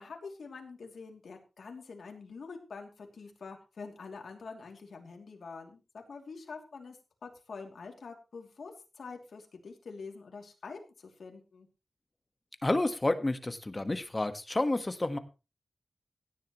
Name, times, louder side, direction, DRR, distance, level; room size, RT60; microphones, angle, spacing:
voice 1, 0.0-11.7, left 4 dB, 85° left, 3 dB, 2.9 m, -46 dB
voice 2, 12.6-15.2, left 2 dB, 25° left, 9 dB, 1.5 m, -30 dB
16.5 x 10.5 x 3.1 m, 0.30 s
wide cardioid pair, 85°, 0 cm